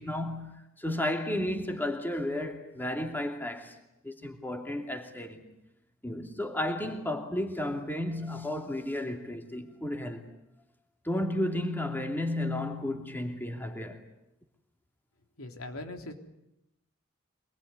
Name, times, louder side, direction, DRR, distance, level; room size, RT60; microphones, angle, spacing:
voice 1, 0.0-3.8 4.0-5.5 6.0-10.3 11.0-14.0, left 1 dB, 10° left, 2.7 m, -33 dB
voice 2, 15.4-16.1, left 2 dB, 80° left, 3.5 m, -40 dB
25.5 x 21.0 x 9.7 m
head